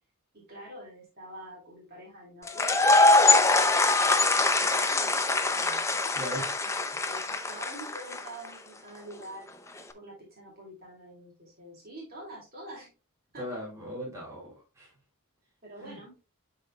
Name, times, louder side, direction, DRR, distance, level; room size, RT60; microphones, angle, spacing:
voice 1, 0.3-5.8 6.6-9.5 9.9-12.9 13.3-13.6 15.6-16.1, right 1 dB, 40° right, -3 dB, 2.7 m, -46 dB
sound 1, 2.5-8.5, left 3 dB, 10° left, 0.5 m, -23 dB
voice 2, 6.1-6.6 13.3-14.9 15.8-16.0, equal, 15° right, -4 dB, 3.1 m, -38 dB
11.5 x 4.2 x 2.3 m, 0.29 s
head